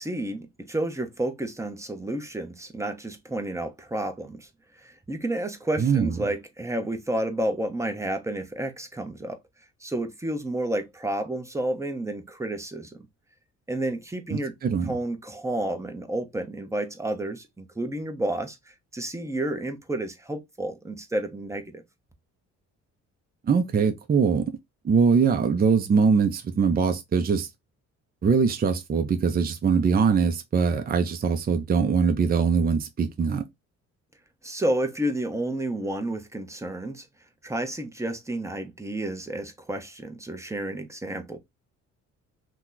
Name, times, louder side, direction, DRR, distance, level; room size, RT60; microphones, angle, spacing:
voice 1, 0.0-4.5 4.8-9.4 9.8-13.0 13.7-14.5 14.8-21.8 34.4-37.0 37.4-41.4, right 1 dB, 10° right, 0.9 m, -30 dB
voice 2, 5.8-6.2 14.3-14.9 23.4-24.5 24.8-27.5 28.2-33.4, right 5 dB, 30° right, 0.6 m, -22 dB
2.9 x 2.2 x 3.9 m
cardioid pair, 90°, 30 cm